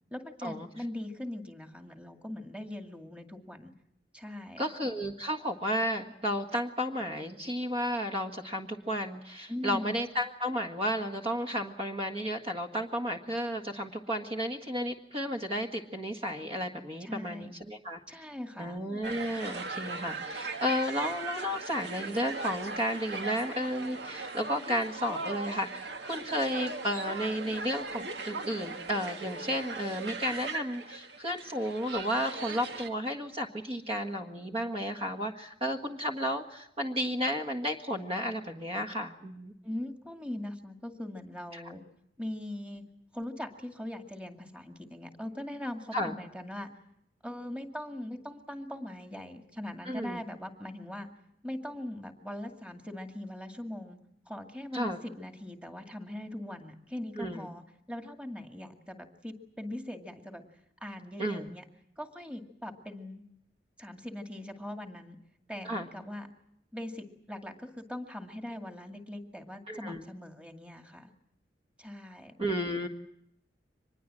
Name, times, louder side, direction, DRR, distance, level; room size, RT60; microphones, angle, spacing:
voice 1, 0.1-3.7 4.1-4.6 9.5-9.9 17.0-17.5 18.1-18.8 39.6-41.8 42.2-42.8 43.1-46.7 47.2-51.1 51.4-54.0 54.3-57.6 57.9-60.4 60.8-61.6 62.0-63.2 63.8-65.2 65.5-66.3 66.7-71.1 71.8-72.3, left 1 dB, 5° right, 5 dB, 2.1 m, -41 dB
voice 2, 4.6-18.0 18.6-39.5 41.5-41.6 45.9-46.1 49.8-50.2 54.7-55.0 57.2-57.5 61.2-61.5 65.6-65.9 69.7-70.0 72.4-72.9, equal, 35° right, 4 dB, 1.7 m, -33 dB
sound 1, 19.0-32.9, right 3 dB, 75° right, 1.8 m, -39 dB
25.0 x 21.0 x 7.6 m, 0.77 s
head